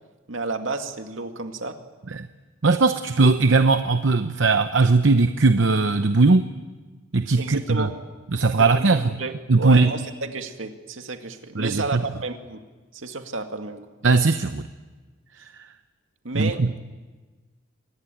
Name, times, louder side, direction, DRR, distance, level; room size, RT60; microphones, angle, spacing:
voice 1, 0.3-1.8 7.3-7.9 8.5-12.6 12.9-13.8 16.2-16.6, right 3 dB, 85° right, 6 dB, 2.1 m, -31 dB
voice 2, 2.6-6.5 7.1-7.9 8.3-9.1 9.5-9.9 11.6-12.0 14.0-14.6 15.4-15.5 16.3-16.9, right 3 dB, 70° right, 9 dB, 0.8 m, -19 dB
25.0 x 20.0 x 9.2 m, 1.3 s
head